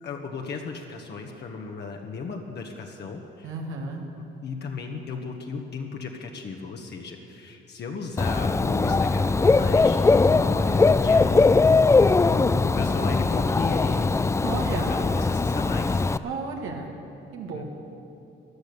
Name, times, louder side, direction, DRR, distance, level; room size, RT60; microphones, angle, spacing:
voice 1, 0.0-3.5 4.2-14.1 14.7-16.0 17.5-17.6, left 4 dB, 60° left, 2 dB, 1.4 m, -35 dB
voice 2, 3.4-4.0 14.4-14.9 16.2-16.9 17.3-17.6, right 4 dB, 85° right, 1 dB, 1.9 m, -33 dB
Dog / Bird, 8.2-16.2, left 3 dB, 15° left, 0.3 m, -20 dB
16.5 x 10.5 x 6.9 m, 2.7 s
cardioid pair, 90°, 20 cm